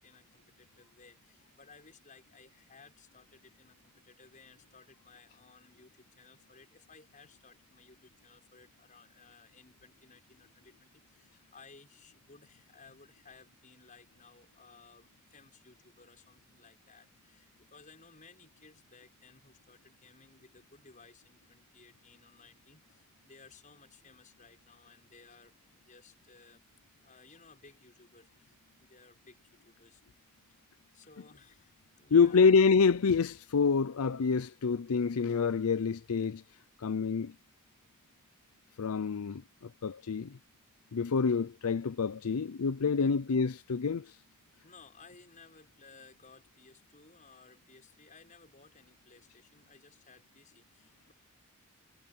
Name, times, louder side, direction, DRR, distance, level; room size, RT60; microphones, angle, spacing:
voice 1, 0.0-26.6 27.0-30.0 30.9-32.5 43.0-43.1 44.6-51.1, left 4 dB, 35° left, 5.7 m, -59 dB
voice 2, 32.1-36.4 36.8-37.3 38.8-40.4 40.9-44.2, left 5 dB, 80° left, 0.5 m, -27 dB
head